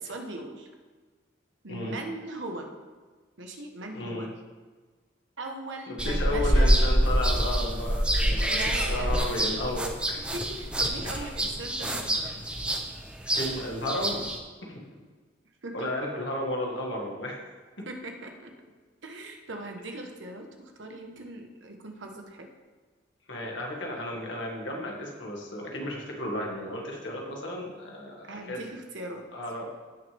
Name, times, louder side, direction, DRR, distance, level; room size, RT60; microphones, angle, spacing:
voice 1, 0.0-0.7 1.6-2.7 3.4-4.3 5.4-6.8 8.5-9.3 10.2-12.4 13.4-13.5 15.6-15.9 17.8-18.5 19.0-22.5 28.3-29.2, right 2 dB, 75° right, 3 dB, 1.3 m, -39 dB
voice 2, 3.9-4.3 6.0-10.2 11.1-11.3 13.3-14.2 14.7-14.8 15.7-17.4 23.3-28.7 29.3-29.6, left 1 dB, 70° left, -1 dB, 2.0 m, -33 dB
sound 1, 6.0-14.4, equal, 5° right, 0.6 m, -26 dB
16.0 x 6.3 x 3.5 m, 1.4 s
head